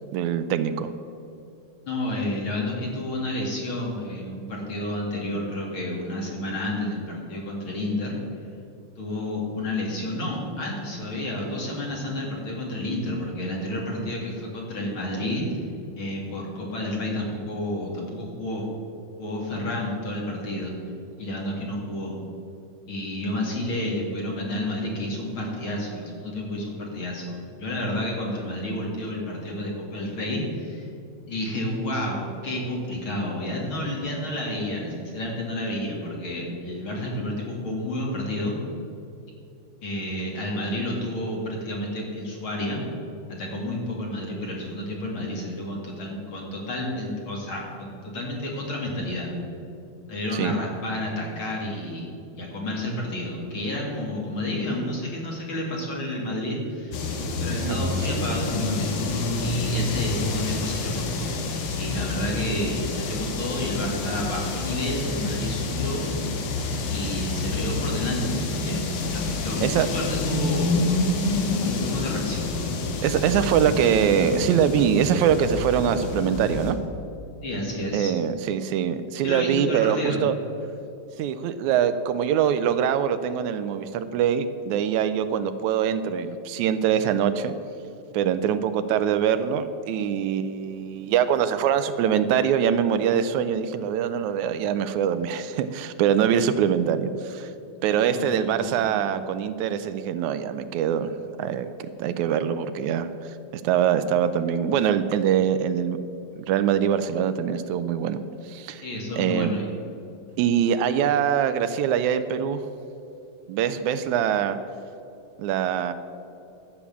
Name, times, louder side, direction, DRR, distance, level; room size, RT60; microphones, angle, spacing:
voice 1, 0.1-0.9 50.3-50.6 57.6-58.1 69.6-69.9 73.0-76.8 77.9-80.4 81.2-87.5 88.1-97.5 97.8-101.1 101.4-106.0 106.4-108.2 108.4-108.8 109.1-109.5 110.4-112.6 113.5-114.6 115.4-115.9, right 8 dB, 85° right, 11 dB, 1.9 m, -23 dB
voice 2, 1.9-8.2 9.0-15.4 16.0-18.7 19.2-20.7 21.2-22.2 22.9-30.9 31.3-38.6 39.8-42.8 43.3-49.3 50.1-52.1 52.4-57.0 57.4-61.4 61.8-66.3 66.9-70.9 71.6-72.5 77.4-78.1 79.2-80.2 98.1-99.1 108.8-109.7, left 1 dB, 45° left, -2 dB, 2.7 m, -30 dB
sound 1, 56.9-76.7, left 3 dB, 85° left, 2.8 m, -28 dB
12.0 x 8.6 x 7.1 m, 2.7 s
omnidirectional pair, 3.4 m